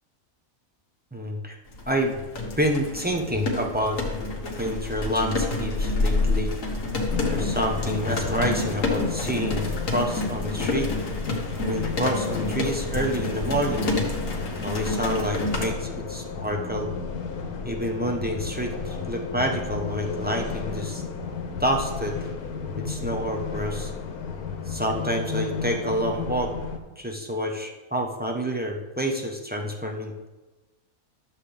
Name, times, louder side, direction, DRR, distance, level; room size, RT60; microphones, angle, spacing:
voice 1, 1.1-1.6 1.9-2.2 2.6-4.0 4.6-6.5 7.3-10.9 11.6-13.9 14.6-16.9 17.6-21.0 21.6-22.2 22.8-23.9 24.7-26.5 27.0-30.3, equal, 10° right, 1 dB, 0.6 m, -28 dB
sound 1, 1.7-15.7, left 2 dB, 60° left, 1.7 m, -28 dB
sound 2, 7.1-26.8, left 5 dB, 90° left, 1.4 m, -33 dB
12.0 x 7.4 x 3.4 m, 1.1 s
omnidirectional pair, 1.6 m